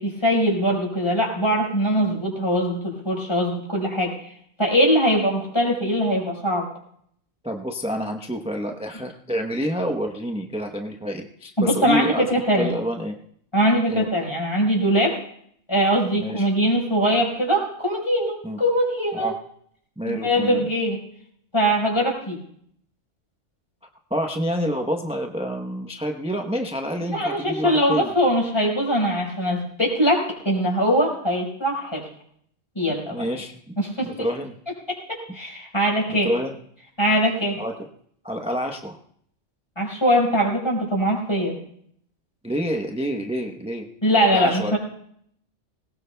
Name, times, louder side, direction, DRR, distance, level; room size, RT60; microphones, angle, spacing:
voice 1, 0.0-4.3 4.6-6.7 11.6-12.7 13.5-15.2 15.7-19.3 20.0-21.0 21.5-22.4 27.1-32.0 32.7-33.3 33.8-34.1 35.1-36.3 37.0-37.6 39.8-41.6 44.0-44.8, equal, 20° left, -2 dB, 4.7 m, -22 dB
voice 2, 7.4-13.2 13.9-14.1 16.2-16.5 18.4-18.6 19.1-19.4 20.0-20.7 24.1-28.1 33.1-33.7 34.0-34.5 36.1-36.5 37.6-37.7 38.2-39.0 42.4-43.9 44.3-44.8, equal, 5° right, 3 dB, 0.7 m, -28 dB
20.5 x 18.5 x 2.2 m, 0.67 s
omnidirectional pair, 1.3 m